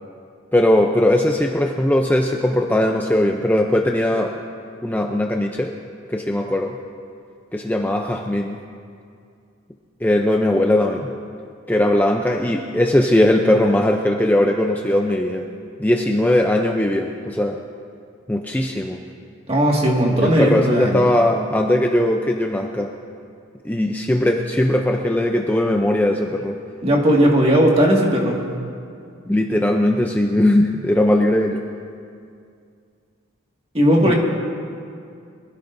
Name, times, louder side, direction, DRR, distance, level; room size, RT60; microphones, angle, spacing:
voice 1, 0.5-4.3 4.8-5.7 6.1-6.8 7.5-8.6 10.0-11.1 11.7-15.5 15.8-17.6 18.3-19.0 20.2-22.9 23.6-26.6 29.3-31.6 34.0-34.1, left 1 dB, 10° left, 2 dB, 0.5 m, -19 dB
voice 2, 19.5-21.0 26.8-28.5 33.7-34.1, equal, 30° right, -2 dB, 2.0 m, -17 dB
24.0 x 16.0 x 2.7 m, 2.4 s
head